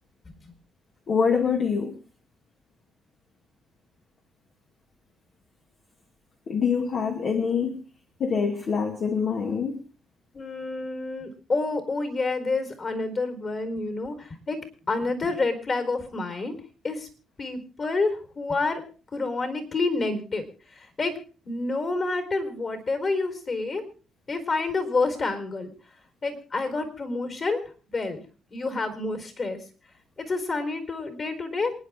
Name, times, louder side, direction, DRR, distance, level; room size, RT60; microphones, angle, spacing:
voice 1, 1.1-2.0 6.5-7.8 8.2-9.8, left 6 dB, 55° left, 2 dB, 2.4 m, -25 dB
voice 2, 10.3-14.6 14.9-16.6 16.8-17.1 17.4-18.8 19.1-20.4 21.0-21.1 21.4-23.8 24.3-25.7 26.2-27.6 27.9-28.2 28.5-29.6 30.2-31.7, left 3 dB, 40° left, 7 dB, 4.7 m, -28 dB
27.5 x 10.5 x 3.8 m, 0.38 s
cardioid pair, 90°, 0 cm